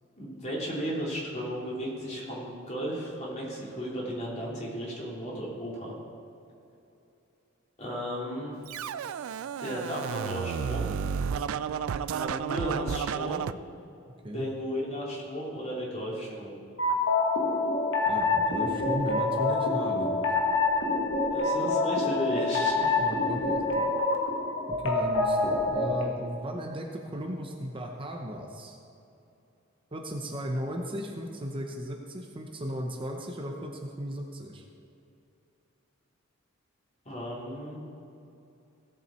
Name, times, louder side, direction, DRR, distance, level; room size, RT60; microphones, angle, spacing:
voice 1, 0.1-5.9 7.8-8.6 9.6-10.9 12.2-13.5 14.2-16.6 21.3-23.0 37.0-37.8, equal, 35° left, -4 dB, 3.0 m, -34 dB
Scratching (performance technique), 8.7-13.5, right 7 dB, 85° right, 0.4 m, -32 dB
voice 2, 14.0-14.5 18.1-20.3 23.0-23.9 24.8-28.8 29.9-34.7, equal, 25° right, 1 dB, 0.8 m, -36 dB
sound 1, 16.8-26.0, left 3 dB, 65° left, 1.7 m, -26 dB
17.5 x 7.4 x 4.4 m, 2.8 s
head